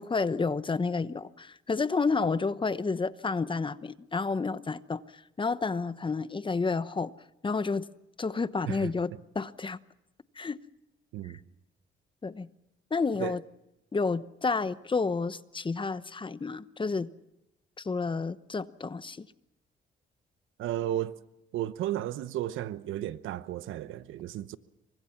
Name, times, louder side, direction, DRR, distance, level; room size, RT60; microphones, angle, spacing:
voice 1, 0.0-7.1 7.4-7.9 8.2-9.8 10.4-10.6 11.2-11.3 12.2-12.5 12.9-13.4 13.9-17.1 17.8-19.3, left 4 dB, 25° left, 1.0 m, -30 dB
voice 2, 20.6-21.2 21.5-24.6, right 12 dB, 85° right, 1.0 m, -33 dB
27.0 x 24.0 x 6.0 m
cardioid pair, 90°, 20 cm